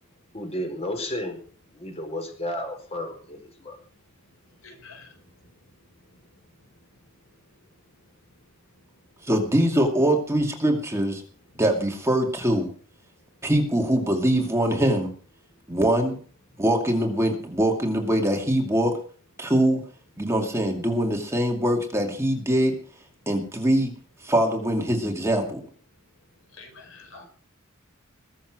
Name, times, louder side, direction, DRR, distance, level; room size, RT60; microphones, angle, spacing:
voice 1, 0.3-1.4 1.7-3.8, left 1 dB, 30° left, 4 dB, 4.5 m, -32 dB
voice 2, 4.4-5.4 5.8-6.4 26.5-27.2, left 4 dB, 75° left, 3 dB, 5.1 m, -49 dB
voice 3, 9.2-11.2 11.6-12.7 13.4-15.1 15.7-16.1 16.6-18.9 19.4-19.8 20.2-22.7 23.3-23.9 24.2-25.6, right 1 dB, 15° right, 1 dB, 2.4 m, -23 dB
21.0 x 7.3 x 6.2 m, 0.43 s
head